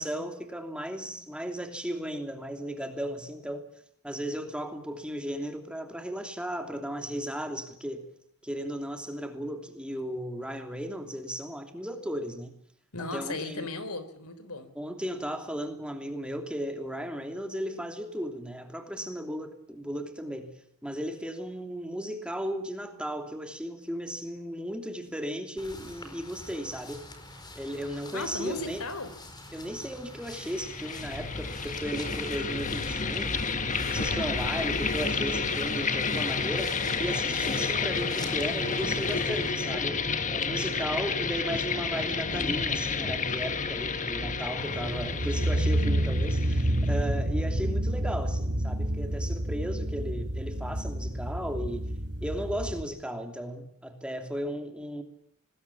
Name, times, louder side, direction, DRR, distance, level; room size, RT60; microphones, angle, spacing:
voice 1, 0.0-3.7 4.0-8.1 8.4-12.5 13.1-13.7 14.7-20.5 20.8-27.1 27.5-28.8 29.5-33.5 33.8-40.1 40.3-51.8 52.2-55.0, equal, 5° right, 5 dB, 2.9 m, -35 dB
voice 2, 12.9-14.7 28.1-29.1, left 3 dB, 80° left, 13 dB, 3.6 m, -36 dB
sound 1, 25.6-39.5, left 2 dB, 20° left, 4.4 m, -45 dB
sound 2, 30.3-47.0, left 4 dB, 35° left, 1.6 m, -30 dB
sound 3, 44.6-52.8, right 1 dB, 55° right, 4.9 m, -29 dB
26.0 x 20.5 x 7.2 m, 0.69 s
head